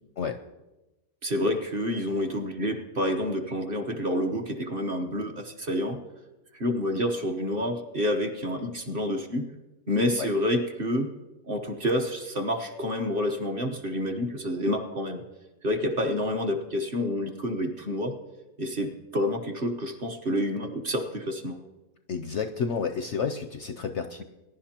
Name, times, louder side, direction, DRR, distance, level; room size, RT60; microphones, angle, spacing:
voice 1, 1.2-6.0 6.5-9.5 9.9-11.1 11.5-15.2 15.6-18.1 18.6-21.6, left 1 dB, 40° right, 3 dB, 1.1 m, -28 dB
voice 2, 22.1-24.2, left 6 dB, 65° left, 7 dB, 0.7 m, -30 dB
21.0 x 11.0 x 2.9 m, 1.0 s
omnidirectional pair, 1.6 m